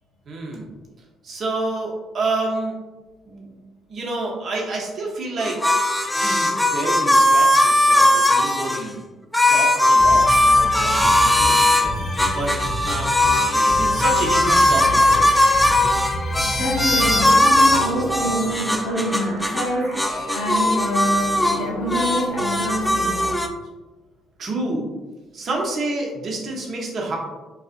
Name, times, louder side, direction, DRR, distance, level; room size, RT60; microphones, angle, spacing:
voice 1, 0.3-0.7 1.2-2.8 3.3-3.5 3.9-5.6 6.1-9.0 9.5-11.9 12.3-12.5 12.9-13.1 13.4-15.3 24.4-24.9 25.3-27.2, right 2 dB, 55° right, -2 dB, 0.7 m, -28 dB
sound 1, 5.4-8.8 9.3-11.9 12.2-19.7 19.9-21.6 21.9-23.5, left 1 dB, 5° left, 0.3 m, -18 dB
sound 2, 10.0-17.4, left 1 dB, 30° left, 0.8 m, -29 dB
voice 2, 16.5-23.4, equal, 75° left, -1 dB, 0.6 m, -26 dB
sound 3, 17.1-23.3, right 1 dB, 75° right, 0.9 m, -34 dB
2.6 x 2.4 x 2.4 m, 1.1 s
hypercardioid pair, 55°, 0 cm